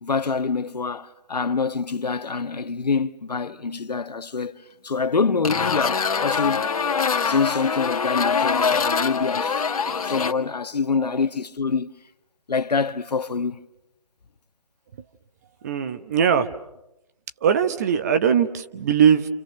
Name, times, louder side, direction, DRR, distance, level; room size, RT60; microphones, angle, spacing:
voice 1, 0.0-4.5 4.8-6.7 7.2-9.6 9.9-11.9 12.5-13.6, left 5 dB, 85° left, 1.3 m, -25 dB
sound 1, 5.4-10.3, left 6 dB, 60° left, 1.7 m, -24 dB
voice 2, 15.6-16.5 17.4-19.3, right 8 dB, 25° right, 1.0 m, -20 dB
29.0 x 28.5 x 6.5 m
hypercardioid pair, 160°, 20 cm